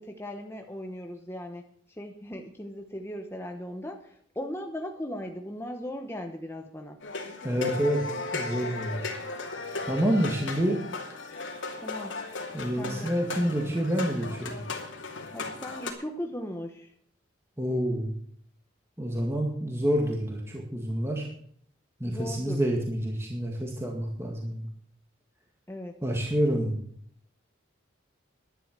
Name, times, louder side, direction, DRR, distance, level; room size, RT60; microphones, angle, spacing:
voice 1, 0.0-7.0 11.8-12.2 12.8-13.1 15.3-16.9 22.0-22.6 25.7-26.0, left 1 dB, 15° left, 4 dB, 1.0 m, -38 dB
sound 1, 7.0-15.9, left 3 dB, 80° left, 2.6 m, -36 dB
voice 2, 7.4-9.1 9.9-10.8 12.5-14.6 17.6-18.1 19.0-21.3 22.0-24.7 26.0-26.8, equal, 15° right, 0 dB, 2.0 m, -28 dB
11.5 x 10.5 x 6.7 m, 0.63 s
head